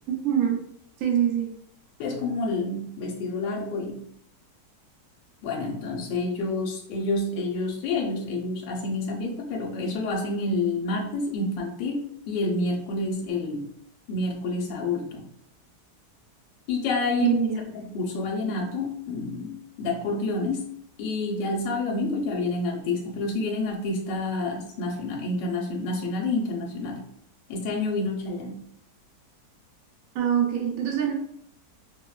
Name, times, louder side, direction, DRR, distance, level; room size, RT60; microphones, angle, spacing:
voice 1, 0.2-0.6 1.0-1.5 17.2-17.6 30.1-31.1, right 9 dB, 65° right, 1 dB, 1.0 m, -23 dB
voice 2, 2.0-4.0 5.4-13.7 14.1-15.2 16.7-17.4 17.8-20.7 21.0-27.0 27.5-28.6, left 2 dB, 80° left, 0 dB, 1.2 m, -28 dB
4.4 x 2.0 x 2.3 m, 0.69 s
omnidirectional pair, 1.9 m